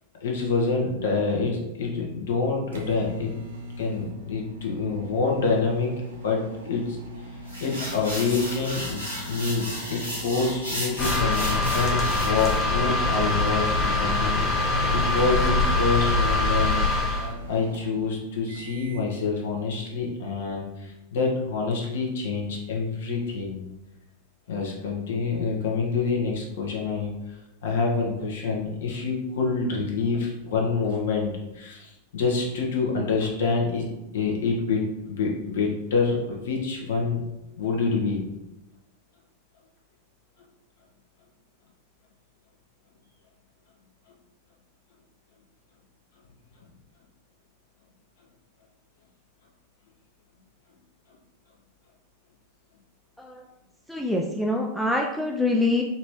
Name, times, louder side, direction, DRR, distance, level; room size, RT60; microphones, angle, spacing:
voice 1, 0.2-3.4 3.8-5.9 6.2-7.0 7.6-17.2 17.5-23.7 24.5-27.4 27.6-37.2 37.6-38.2, left 4 dB, 60° left, -1 dB, 1.0 m, -27 dB
sound 1, 2.2-19.1, equal, 65° right, 0.6 m, -41 dB
sound 2, 7.5-12.6, equal, 85° left, 1.4 m, -34 dB
sound 3, 11.0-17.3, left 2 dB, 25° left, 0.7 m, -23 dB
voice 2, 53.9-55.8, left 2 dB, ahead, 0 dB, 0.4 m, -25 dB
4.2 x 2.8 x 3.0 m, 0.92 s
figure-of-eight pair, 90°, 0 cm